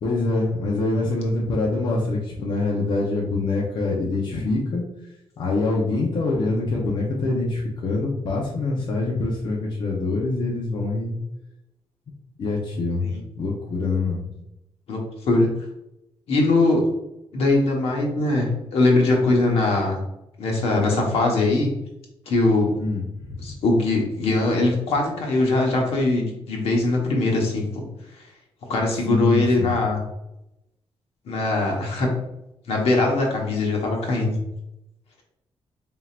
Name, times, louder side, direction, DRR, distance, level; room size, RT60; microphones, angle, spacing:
voice 1, 0.0-4.8 5.4-11.2 12.4-13.1 13.4-14.3 22.8-23.5 29.1-29.7, left 2 dB, 50° left, -3 dB, 0.8 m, -25 dB
voice 2, 14.9-15.5 16.3-16.8 17.3-20.0 20.4-21.7 22.3-22.7 23.4-27.8 28.7-30.0 31.3-32.1 32.7-34.4, left 2 dB, 75° left, 0 dB, 1.2 m, -21 dB
4.3 x 3.7 x 2.5 m, 0.87 s
wide cardioid pair, 165°, 10 cm